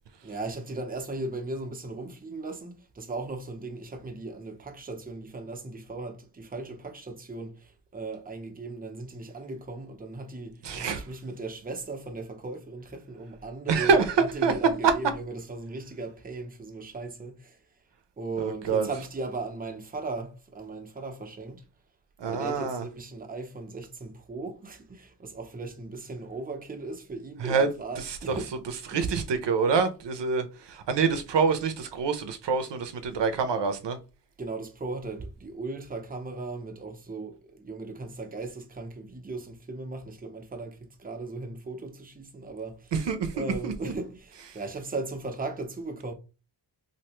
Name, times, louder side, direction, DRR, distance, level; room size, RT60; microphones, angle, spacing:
voice 1, 0.2-14.0 14.3-17.6 18.2-21.6 22.2-28.5 28.9-29.0 34.4-42.9 43.3-46.1, right 3 dB, 20° right, 0.6 m, -37 dB
voice 2, 10.6-11.1 13.7-14.5 14.8-14.9 18.4-18.9 22.2-22.8 27.4-27.7 28.0-28.4 28.9-34.0 42.9-43.7, right 5 dB, 80° right, 0.6 m, -26 dB
3.2 x 2.6 x 2.9 m
wide cardioid pair, 100°, 42 cm